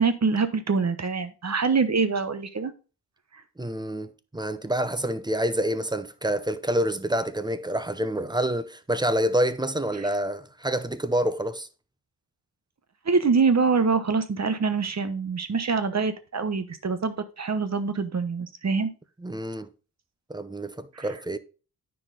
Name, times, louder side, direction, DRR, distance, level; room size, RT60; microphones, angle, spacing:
voice 1, 0.0-2.7 9.9-10.1 13.0-18.9 20.9-21.1, right 5 dB, 40° right, 1.0 m, -25 dB
voice 2, 3.6-11.7 19.2-19.7 20.3-21.4, right 1 dB, 10° right, 0.7 m, -27 dB
9.6 x 4.8 x 3.8 m
wide cardioid pair, 95°, 40 cm